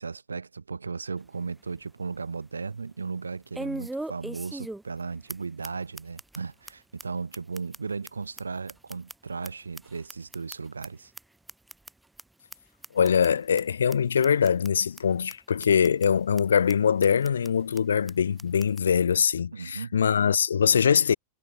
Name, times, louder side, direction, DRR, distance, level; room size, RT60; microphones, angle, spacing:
voice 1, 0.0-11.1 19.5-19.9, right 4 dB, 75° right, 2.8 m, -36 dB
sound 1, 1.2-1.3 1.7-1.8 3.5-5.0 5.3-5.4 5.6-5.7 6.0-6.4 6.7-6.8 7.0-7.1 7.3-9.5 9.7-10.9 11.1-11.2 11.5-11.9 12.2-12.3 12.5-12.6 12.8-13.3 13.6-13.7 13.9-14.0 14.2-14.7 15.0-15.1 15.3-15.4 15.6-16.1 16.4-16.5 16.7-16.8 17.0-17.5 17.8-17.9 18.1-18.2 18.4-18.8, right 2 dB, 5° right, 4.9 m, -39 dB
voice 2, 12.9-21.1, left 7 dB, 70° left, 0.9 m, -23 dB
figure-of-eight pair, 90°, 0 cm